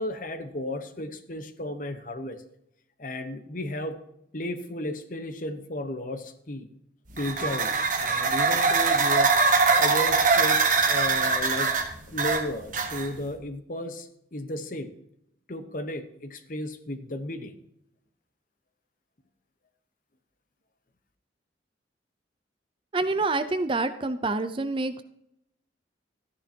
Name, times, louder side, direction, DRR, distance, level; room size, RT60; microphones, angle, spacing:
voice 1, 0.0-2.4 3.0-4.0 4.3-6.7 7.2-9.3 9.8-11.7 12.1-14.9 15.5-17.5, left 1 dB, 45° left, 8 dB, 1.0 m, -34 dB
sound 1, 7.1-13.3, right 4 dB, 45° right, 1.3 m, -23 dB
voice 2, 22.9-25.0, right 3 dB, 25° right, 11 dB, 0.5 m, -27 dB
13.5 x 10.5 x 2.8 m, 0.76 s
head